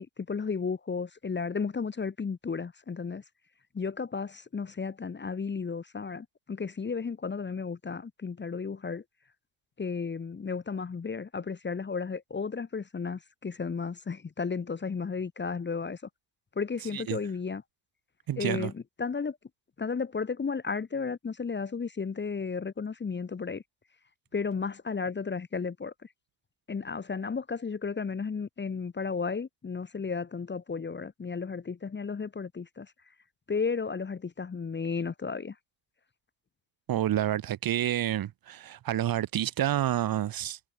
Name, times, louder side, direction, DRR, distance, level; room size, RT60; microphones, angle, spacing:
voice 1, 0.0-3.2 3.7-9.0 9.8-16.0 16.5-17.6 18.4-19.4 19.8-23.6 24.3-25.9 26.7-32.9 33.5-35.6, left 5 dB, 25° left, 1.5 m, -33 dB
voice 2, 18.3-18.7 36.9-40.6, right 12 dB, 45° right, 1.5 m, -29 dB
hypercardioid pair, 70°, 48 cm